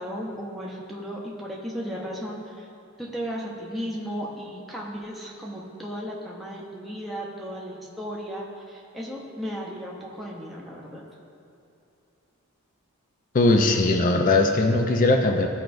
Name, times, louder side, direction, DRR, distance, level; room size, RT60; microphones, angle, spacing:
voice 1, 0.0-2.7 3.0-11.0, equal, ahead, -4 dB, 0.7 m, -35 dB
voice 2, 13.3-15.5, left 2 dB, 40° left, 3 dB, 0.4 m, -20 dB
13.0 x 4.5 x 2.6 m, 2.8 s
head